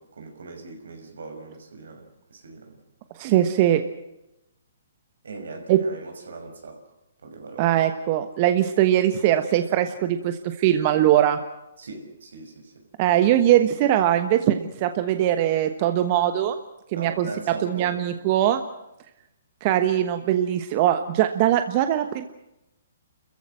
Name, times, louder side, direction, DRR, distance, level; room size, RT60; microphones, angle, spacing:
voice 1, 0.0-2.8 5.2-6.8 7.2-7.7 11.8-12.8 13.3-13.4 16.9-18.0, right 3 dB, 80° right, 5 dB, 5.9 m, -40 dB
voice 2, 3.2-3.8 5.7-5.8 7.6-11.4 13.0-16.6 16.9-17.3 17.6-18.6 19.6-22.3, right 12 dB, 35° right, 9 dB, 1.2 m, -21 dB
29.5 x 15.0 x 7.7 m, 0.88 s
hypercardioid pair, 150°, 0 cm